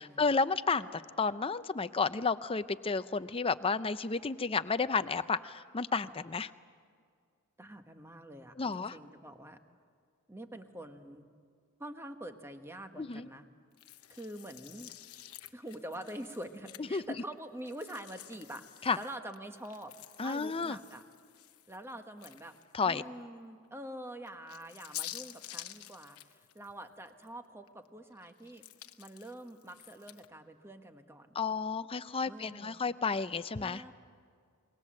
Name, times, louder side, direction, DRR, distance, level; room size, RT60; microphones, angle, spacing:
voice 1, 0.0-6.5 8.6-9.0 13.0-13.3 16.9-17.0 18.9-19.0 20.2-20.8 22.7-23.0 31.4-33.8, left 4 dB, 25° left, 12 dB, 0.6 m, -32 dB
voice 2, 7.6-9.6 10.3-11.3 11.8-13.4 14.1-14.9 15.5-21.0 21.7-22.6 22.8-28.6 29.0-31.3 32.2-32.8 33.6-33.9, right 1 dB, 10° right, 6 dB, 1.2 m, -46 dB
sound 1, 13.8-17.1 17.6-22.8 23.2-23.3 24.2-27.3 27.7-30.3, left 13 dB, 75° left, 1.0 m, -49 dB
28.5 x 21.5 x 7.6 m, 2.1 s
head